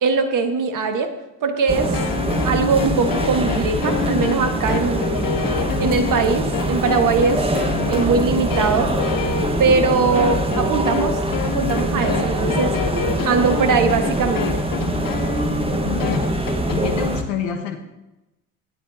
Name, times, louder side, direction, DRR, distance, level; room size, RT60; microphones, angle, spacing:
voice 1, 0.0-1.1 1.4-2.0 2.4-5.1 5.8-7.5 7.9-8.9 9.6-12.8 13.2-14.6, right 4 dB, 45° right, 7 dB, 1.6 m, -21 dB
sound 1, 1.7-17.2, right 1 dB, 10° right, 1.4 m, -23 dB
sound 2, 1.9-16.8, left 8 dB, 45° left, 1.5 m, -28 dB
voice 2, 15.8-16.3 16.7-17.8, left 7 dB, 70° left, 3 dB, 1.6 m, -27 dB
16.5 x 9.7 x 2.8 m, 0.99 s
hypercardioid pair, 60°, 45 cm